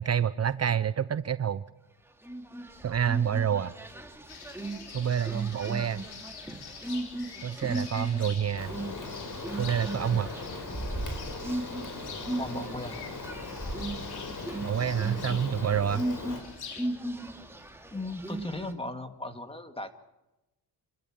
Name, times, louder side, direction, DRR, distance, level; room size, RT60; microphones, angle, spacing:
voice 1, 0.0-1.6 2.8-3.7 4.9-6.0 7.4-8.7 9.6-10.3 14.6-16.0, right 8 dB, 40° right, 14 dB, 0.7 m, -28 dB
sound 1, 2.2-18.7, right 1 dB, 5° right, 2.7 m, -37 dB
sound 2, 4.3-16.9, left 6 dB, 70° left, 3.6 m, -46 dB
Rain, 8.6-16.4, left 3 dB, 50° left, 5.5 m, -39 dB
voice 2, 12.4-13.0 17.9-19.9, left 2 dB, 15° left, 8 dB, 2.1 m, -37 dB
27.5 x 14.0 x 8.9 m, 0.98 s
cardioid pair, 85°, 40 cm